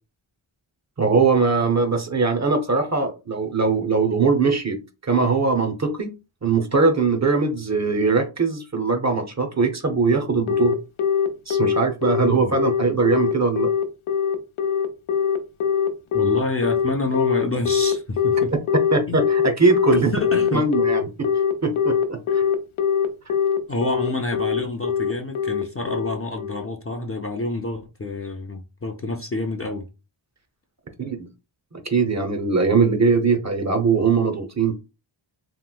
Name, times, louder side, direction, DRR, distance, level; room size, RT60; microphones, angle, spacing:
voice 1, 1.0-6.1 6.4-10.8 11.5-13.7 18.9-20.1 20.5-21.3 21.6-22.4 31.0-31.3 31.7-34.7, right 4 dB, 35° right, 0.6 m, -21 dB
Telephone, 10.5-26.7, left 7 dB, 85° left, 0.6 m, -21 dB
voice 2, 16.1-18.5 19.1-19.2 19.9-20.6 23.7-29.9, left 2 dB, 30° left, 0.4 m, -28 dB
2.9 x 2.9 x 2.2 m
wide cardioid pair, 50°, 48 cm